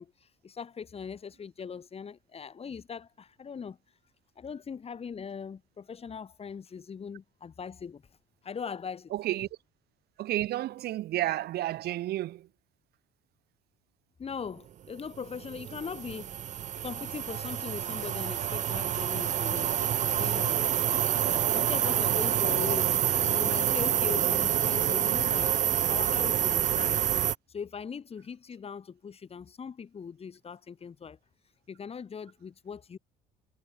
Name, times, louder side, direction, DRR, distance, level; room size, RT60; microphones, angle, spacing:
voice 1, 0.0-4.0 4.4-8.0 8.4-9.1 14.2-16.3 16.8-19.7 20.0-20.6 21.5-27.1 27.5-31.2 31.7-33.0, left 6 dB, 35° left, 7.9 m, -40 dB
voice 2, 9.1-9.5 10.2-12.5 22.6-22.7, right 14 dB, 70° right, 2.1 m, -31 dB
sound 1, 15.2-27.4, right 10 dB, 45° right, 0.6 m, -27 dB
cardioid pair, 110°, 17 cm